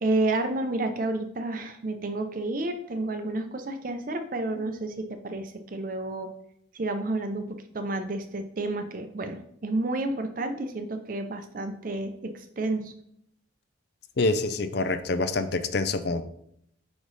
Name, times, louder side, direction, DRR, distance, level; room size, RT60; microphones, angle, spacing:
voice 1, 0.0-6.3 6.7-12.9, right 2 dB, 45° right, 7 dB, 0.5 m, -30 dB
voice 2, 14.2-16.2, left 3 dB, 55° left, 10 dB, 0.5 m, -26 dB
5.0 x 4.9 x 4.0 m, 0.71 s
head